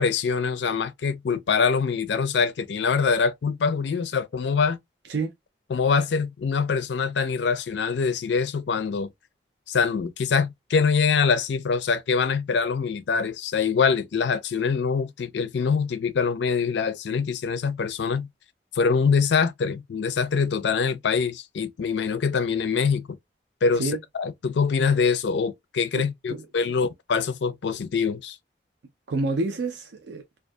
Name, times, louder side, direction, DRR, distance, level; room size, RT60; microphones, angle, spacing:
voice 1, 0.0-4.8 5.7-9.1 9.7-18.3 18.7-23.2 23.6-28.4, left 5 dB, 80° left, 0.4 m, -24 dB
voice 2, 25.9-26.4 29.1-30.2, right 3 dB, 85° right, 0.5 m, -28 dB
2.6 x 2.3 x 2.2 m
head